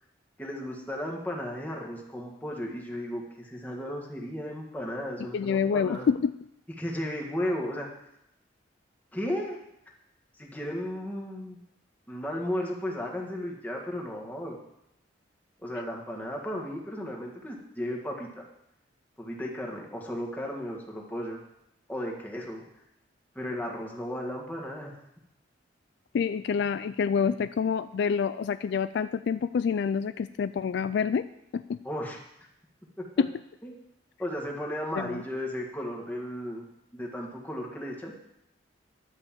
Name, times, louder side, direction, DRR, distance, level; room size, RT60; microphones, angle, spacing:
voice 1, 0.4-6.1 6.8-7.9 9.1-9.6 10.4-11.6 12.1-14.6 15.6-18.4 19.2-21.4 21.9-22.6 23.3-24.9 31.8-32.2 33.0-33.1 33.6-33.7 34.2-36.6 36.9-38.1, equal, 10° left, -1 dB, 1.8 m, -34 dB
voice 2, 5.3-6.3 26.1-31.2 31.5-31.8 33.2-33.3 35.0-35.2, left 6 dB, 65° left, 13 dB, 0.3 m, -27 dB
11.0 x 5.4 x 7.5 m, 0.81 s
head